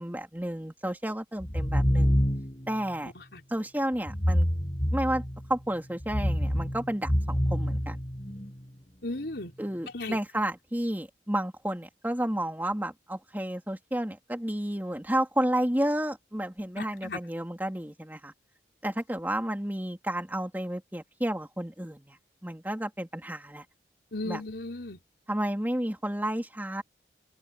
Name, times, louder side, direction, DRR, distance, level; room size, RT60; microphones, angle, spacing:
voice 1, 0.0-2.2 2.7-3.1 3.5-4.5 4.9-5.2 5.5-8.0 9.6-18.3 18.8-22.2 22.4-23.6 24.2-24.4 25.3-26.8, right 1 dB, 10° right, 3.1 m, -31 dB
sound 1, 1.4-2.7 4.1-5.5 6.0-8.5, equal, 30° left, 7.1 m, -27 dB
voice 2, 3.0-3.4 9.0-9.5 9.9-10.2 16.8-17.2 24.1-25.0, left 2 dB, 70° left, 4.7 m, -36 dB
open air
head